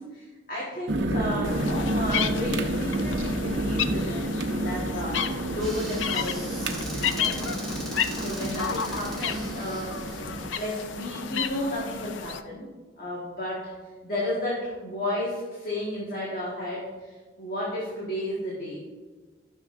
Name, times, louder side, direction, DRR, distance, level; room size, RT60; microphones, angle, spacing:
voice 1, 0.0-6.7 7.1-7.4 8.2-10.1 10.4-12.7 13.0-18.8, left 1 dB, 45° left, -6 dB, 1.6 m, -33 dB
sound 1, 0.9-10.5, right 1 dB, 70° right, 0.8 m, -30 dB
sound 2, 1.4-12.4, left 8 dB, 80° left, 0.4 m, -33 dB
Squeak / Cupboard open or close, 5.6-10.9, right 2 dB, ahead, 2.0 m, -40 dB
13.5 x 6.3 x 2.6 m, 1.4 s
head